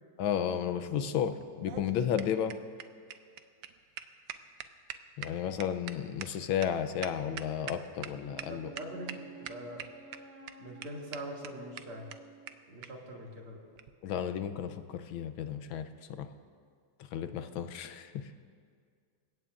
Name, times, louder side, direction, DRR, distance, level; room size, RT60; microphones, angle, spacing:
voice 1, 0.2-2.5 5.2-8.7 14.0-15.9 16.2-16.3 17.1-18.2, left 9 dB, 75° left, 10 dB, 1.5 m, -33 dB
sound 1, 1.4-8.1 8.4-8.5 8.8-9.2 9.5-10.2 10.5-10.6 10.8-10.9 11.1-11.2 11.4-11.5 11.8-11.9 12.1-12.2 12.5-12.6 12.8-12.9 13.8-13.9, right 10 dB, 70° right, 1.3 m, -42 dB
Wind instrument woodwind instrument, 8.2-12.6, right 5 dB, 45° right, 3.5 m, -52 dB
voice 2, 8.5-9.8 10.6-12.1 12.7-13.6, equal, 85° right, -2 dB, 3.2 m, -43 dB
28.0 x 16.5 x 2.5 m, 2.1 s
omnidirectional pair, 2.3 m